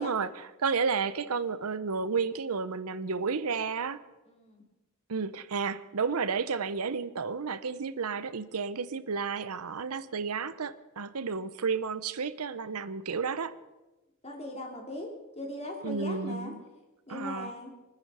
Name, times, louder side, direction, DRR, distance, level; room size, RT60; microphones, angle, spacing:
voice 1, 0.0-4.0 5.1-13.5 15.8-16.6 17.1-17.5, right 5 dB, 90° right, 0.8 m, -32 dB
voice 2, 4.3-4.6 14.2-15.1 15.3-16.5 17.1-17.7, left 1 dB, 30° left, 3.0 m, -39 dB
24.5 x 9.9 x 5.6 m
head